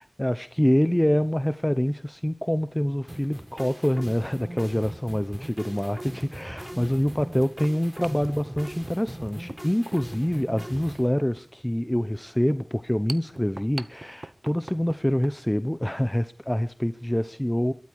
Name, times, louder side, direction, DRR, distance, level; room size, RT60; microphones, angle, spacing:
voice 1, 0.0-17.7, equal, 15° left, 12 dB, 0.9 m, -26 dB
sound 1, 2.7-2.8 4.2-4.3 4.9-5.0 5.6-15.4, right 2 dB, 70° right, 0.8 m, -45 dB
sound 2, 3.1-11.1, right 1 dB, 20° right, 4.8 m, -40 dB
22.0 x 12.5 x 4.8 m, 0.40 s
wide cardioid pair, 40°, 0 cm